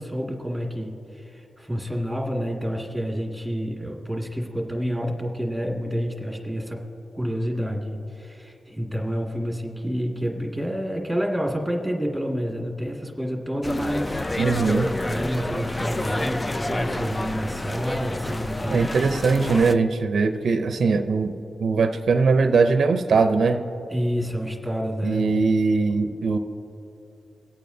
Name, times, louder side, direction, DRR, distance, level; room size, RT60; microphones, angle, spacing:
voice 1, 0.0-6.8 7.1-14.2 15.0-18.9 23.9-25.4, equal, ahead, -1 dB, 1.9 m, -28 dB
sound 1, 13.6-19.7, left 1 dB, 20° left, 0.3 m, -29 dB
voice 2, 14.4-14.9 18.7-21.3 21.6-23.6 25.0-26.4, right 4 dB, 70° right, 7 dB, 0.5 m, -21 dB
24.5 x 8.6 x 2.7 m, 3.0 s
cardioid pair, 90°, 0 cm